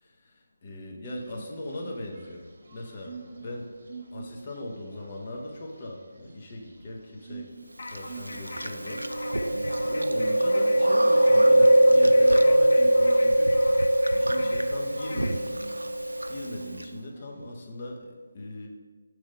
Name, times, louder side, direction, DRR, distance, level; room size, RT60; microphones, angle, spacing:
voice 1, 0.0-3.7 4.1-7.5 7.9-9.1 9.8-15.6 16.3-18.7, left 1 dB, 35° left, 0 dB, 0.9 m, -39 dB
sound 1, 1.1-17.8, right 4 dB, 50° right, 1.1 m, -47 dB
sound 2, 7.8-15.5, left 3 dB, 50° left, 0.5 m, -43 dB
Chewing mastication, 7.9-16.8, right 1 dB, 85° right, 0.3 m, -22 dB
6.2 x 3.3 x 5.1 m, 1.5 s
figure-of-eight pair, 155°, 0 cm